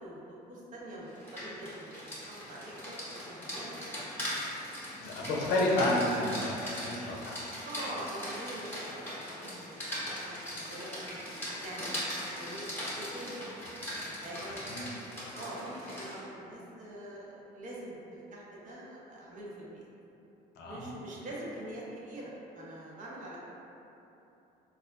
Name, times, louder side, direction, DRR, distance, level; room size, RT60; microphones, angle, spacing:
voice 1, 0.0-4.1 7.6-11.2 11.6-12.6 13.0-13.3 13.9-14.8 15.3-19.8 20.7-23.4, right 1 dB, 50° right, -5 dB, 0.7 m, -44 dB
Rain, 1.1-16.2, equal, 10° left, 1.0 m, -40 dB
voice 2, 5.0-7.5 14.4-14.9 20.6-20.9, left 1 dB, 75° left, -3 dB, 0.6 m, -31 dB
4.0 x 2.4 x 2.3 m, 2.9 s
cardioid pair, 110°, 17 cm